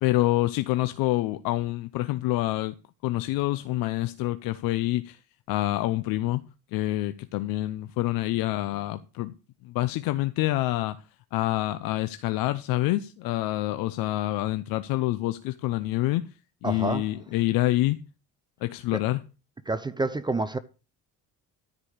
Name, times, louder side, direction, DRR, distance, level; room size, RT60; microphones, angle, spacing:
voice 1, 0.0-2.7 3.0-5.2 5.5-6.4 6.7-9.3 9.6-11.0 11.3-16.2 16.6-18.0 18.6-19.2, left 16 dB, 80° left, 0.7 m, -27 dB
voice 2, 16.6-17.1 19.7-20.6, right 3 dB, 15° right, 0.5 m, -28 dB
13.5 x 5.0 x 6.5 m
cardioid pair, 125°, 34 cm